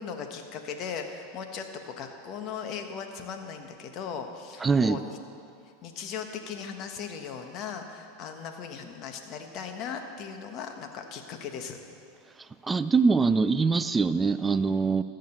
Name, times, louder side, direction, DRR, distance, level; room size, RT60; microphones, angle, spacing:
voice 1, 0.0-5.2 5.8-11.8, left 6 dB, 50° left, 5 dB, 1.4 m, -38 dB
voice 2, 4.6-5.0 12.6-15.0, right 4 dB, 20° right, 13 dB, 0.4 m, -23 dB
14.0 x 6.6 x 8.2 m, 2.5 s
hypercardioid pair, 95°, 0 cm